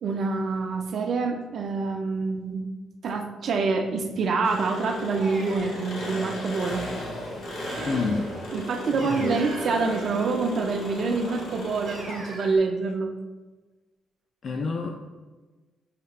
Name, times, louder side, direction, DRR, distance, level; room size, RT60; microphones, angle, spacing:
voice 1, 0.0-2.6 3.0-6.9 8.5-13.1, right 4 dB, 55° right, 5 dB, 0.5 m, -26 dB
Engine, 4.4-12.6, left 1 dB, 60° left, 1.2 m, -36 dB
sound 1, 5.2-6.1 9.0-10.3 11.9-12.5, right 2 dB, 40° right, 0.9 m, -42 dB
sound 2, 7.6-8.7 9.2-10.6, right 3 dB, 80° right, 0.9 m, -38 dB
voice 2, 7.9-8.3 9.0-9.4 14.4-14.9, left 4 dB, 45° left, 2 dB, 0.3 m, -28 dB
6.5 x 3.1 x 2.4 m, 1.3 s
cardioid pair, 120°, 0 cm